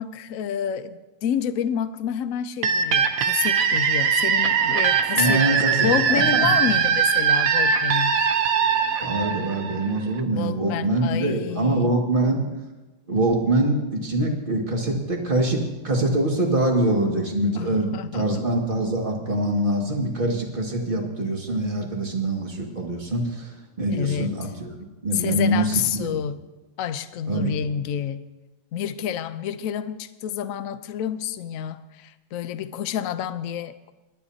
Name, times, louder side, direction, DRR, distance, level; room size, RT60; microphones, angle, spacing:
voice 1, 0.0-5.4 5.8-8.2 10.3-12.0 17.5-18.5 23.9-24.4 25.1-26.4 26.8-28.3 28.7-33.9, left 9 dB, 65° left, 12 dB, 0.8 m, -29 dB
sound 1, 2.6-10.2, right 7 dB, 60° right, 1.0 m, -21 dB
voice 2, 5.1-6.5 9.0-12.5 13.1-23.5 23.8-24.7 25.0-26.1 27.3-27.6, right 1 dB, 25° right, 0 dB, 2.1 m, -24 dB
27.5 x 12.0 x 2.8 m, 1.1 s
omnidirectional pair, 2.1 m